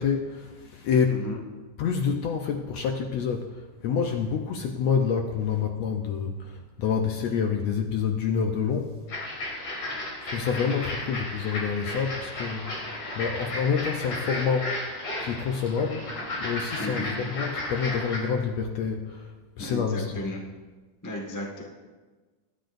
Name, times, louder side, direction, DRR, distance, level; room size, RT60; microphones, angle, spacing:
voice 1, 0.0-1.2 1.8-8.9 10.3-12.8 13.1-14.7 15.2-16.0 16.4-19.3 19.6-20.2, left 6 dB, 75° left, 3 dB, 1.6 m, -27 dB
voice 2, 1.1-1.4 16.8-17.1 19.6-20.4 21.0-21.6, left 1 dB, 30° left, 0 dB, 0.3 m, -34 dB
sound 1, 9.1-18.2, left 1 dB, 55° left, 4.6 m, -34 dB
24.5 x 10.5 x 2.6 m, 1.3 s
omnidirectional pair, 3.8 m